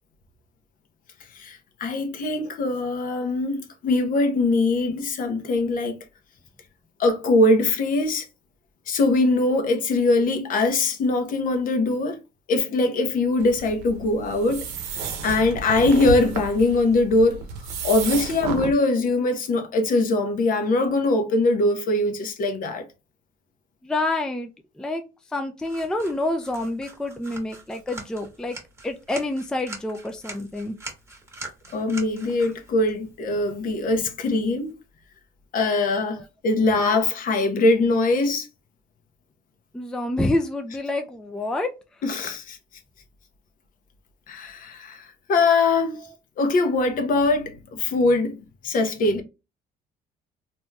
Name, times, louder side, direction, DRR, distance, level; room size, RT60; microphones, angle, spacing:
voice 1, 1.3-6.0 7.0-8.3 8.9-12.2 12.5-14.7 15.2-17.4 17.8-22.8 31.7-34.8 35.5-38.5 42.0-42.6 44.3-46.0 46.4-49.2, left 2 dB, 55° left, 0.8 m, -22 dB
sound 1, 13.4-18.7, right 4 dB, 90° right, 0.7 m, -32 dB
voice 2, 23.8-24.5 24.8-25.0 25.3-28.6 28.8-30.8 36.2-36.3 39.7-41.8 46.0-46.1, left 2 dB, 5° left, 0.3 m, -27 dB
sound 2, 25.6-34.7, right 2 dB, 15° right, 1.1 m, -43 dB
3.1 x 2.6 x 2.2 m
cardioid pair, 110°, 17 cm